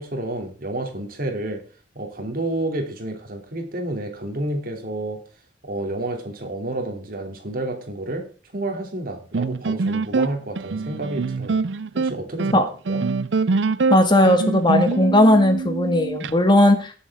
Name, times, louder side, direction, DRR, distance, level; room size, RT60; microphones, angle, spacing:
voice 1, 0.0-1.6 1.9-5.2 5.6-8.3 8.5-11.6 11.9-13.0, right 1 dB, 50° right, 4 dB, 2.9 m, -30 dB
sound 1, 9.3-16.3, right 4 dB, 80° right, 0.6 m, -24 dB
voice 2, 13.9-16.9, left 1 dB, 25° left, 6 dB, 1.8 m, -17 dB
19.0 x 7.3 x 3.6 m, 0.36 s
head